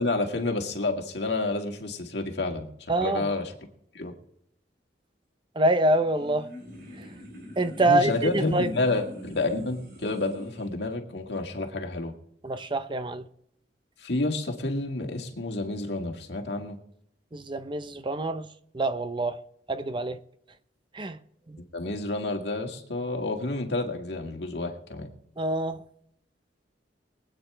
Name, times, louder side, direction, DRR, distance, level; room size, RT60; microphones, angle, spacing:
voice 1, 0.0-2.7 3.0-3.5 3.9-4.1 7.8-12.1 14.0-16.8 21.7-25.1, left 2 dB, 65° left, 2.0 m, -29 dB
voice 2, 2.9-3.3 5.6-6.5 7.6-8.7 12.4-13.2 17.3-18.5 18.7-19.4 19.7-20.2 20.9-21.2 21.5-21.6 25.4-25.8, right 2 dB, 30° right, 0.6 m, -25 dB
sound 1, 5.8-10.7, left 1 dB, 65° right, 5.1 m, -43 dB
24.0 x 9.1 x 3.4 m
head